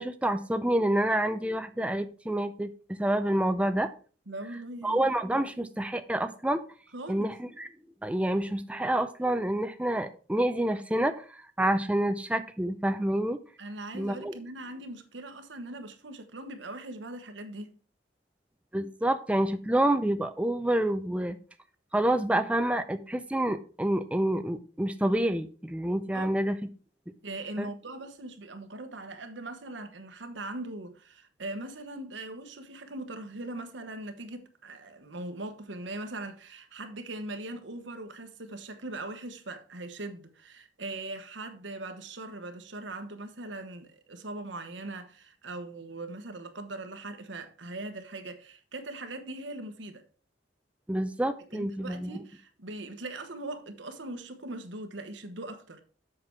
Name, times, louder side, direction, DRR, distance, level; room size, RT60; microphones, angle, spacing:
voice 1, 0.0-3.9 4.8-6.6 7.1-7.7 8.0-13.4 13.9-14.4 18.7-21.4 21.9-26.6 27.6-27.7 50.9-52.1, right 1 dB, 5° right, 0.5 m, -28 dB
voice 2, 4.3-5.1 6.9-7.3 13.6-17.7 26.1-26.4 27.2-50.0 51.5-55.8, right 2 dB, 90° right, 1.2 m, -40 dB
7.7 x 6.0 x 4.6 m
head